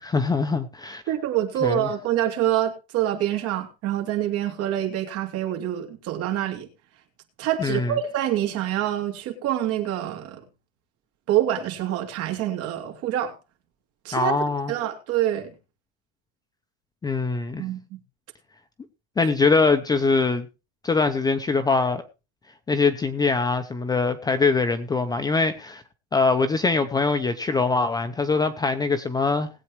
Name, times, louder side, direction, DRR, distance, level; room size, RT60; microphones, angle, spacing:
voice 1, 0.0-1.0 1.6-1.9 7.6-7.9 14.1-14.7 17.0-17.6 19.2-20.5 20.8-22.0 22.7-25.8 26.1-29.5, left 4 dB, 10° left, 0.7 m, -23 dB
voice 2, 1.1-6.7 7.4-10.4 11.3-13.3 14.0-14.3 14.7-15.5 17.6-18.0, right 12 dB, 45° right, 2.9 m, -26 dB
20.0 x 8.4 x 3.1 m
cardioid pair, 165°, 32 cm